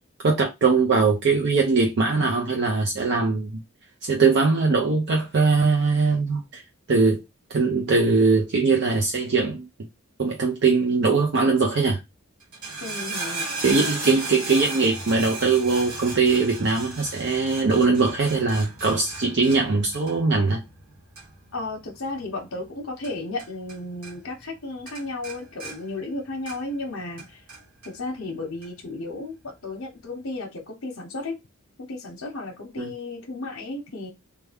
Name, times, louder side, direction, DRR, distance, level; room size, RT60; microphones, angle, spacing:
voice 1, 0.2-3.5 4.0-6.6 6.9-7.2 7.5-9.7 10.2-12.0 13.6-20.6 32.8-32.9, right 4 dB, 50° right, 0.5 m, -21 dB
sound 1, 12.4-23.8 24.0-24.6 24.9-26.8 27.2-27.9 28.6-28.7, right 3 dB, 85° right, 1.3 m, -36 dB
voice 2, 12.8-13.5 21.5-27.4 27.8-31.3 31.8-34.1, left 2 dB, 70° left, 0.8 m, -34 dB
3.2 x 2.2 x 3.4 m
head